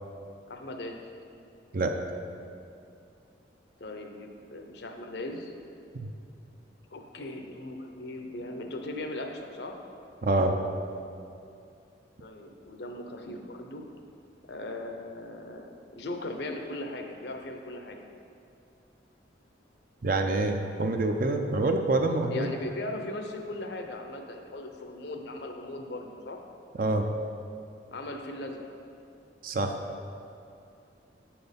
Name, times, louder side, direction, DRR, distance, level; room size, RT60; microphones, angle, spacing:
voice 1, 0.5-1.0 3.8-5.5 6.9-9.8 12.2-13.9 14.4-18.0 22.3-26.4 27.9-28.7, left 2 dB, 65° left, 4 dB, 0.6 m, -38 dB
voice 2, 10.2-10.6 20.0-22.5 26.8-27.2 29.4-29.7, right 2 dB, 50° right, 5 dB, 0.4 m, -26 dB
7.7 x 4.3 x 5.2 m, 2.5 s
head